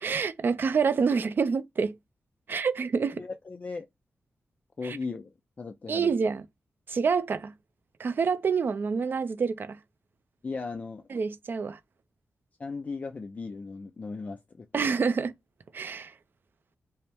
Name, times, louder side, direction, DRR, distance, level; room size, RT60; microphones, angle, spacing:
voice 1, 0.0-2.0 2.5-3.2 4.8-5.0 5.9-6.4 6.9-7.5 8.0-9.8 11.1-11.8 14.7-15.3 15.7-16.1, right 5 dB, 50° right, 0.4 m, -27 dB
voice 2, 3.2-3.9 4.8-5.3 5.6-6.1 10.4-11.1 12.6-14.9, left 4 dB, 35° left, 0.4 m, -37 dB
5.4 x 2.1 x 3.4 m
wide cardioid pair, 155°, 5 cm